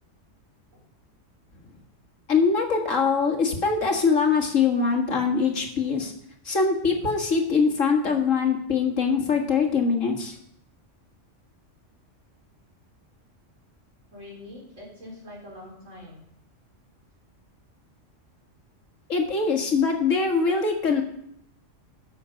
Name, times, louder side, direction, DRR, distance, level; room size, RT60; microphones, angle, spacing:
voice 1, 2.3-6.1 6.4-10.4 19.1-21.0, left 5 dB, 85° left, 2 dB, 2.2 m, -23 dB
voice 2, 14.1-16.2, left 1 dB, 80° right, -3 dB, 4.6 m, -44 dB
13.0 x 8.1 x 5.2 m, 0.73 s
omnidirectional pair, 1.3 m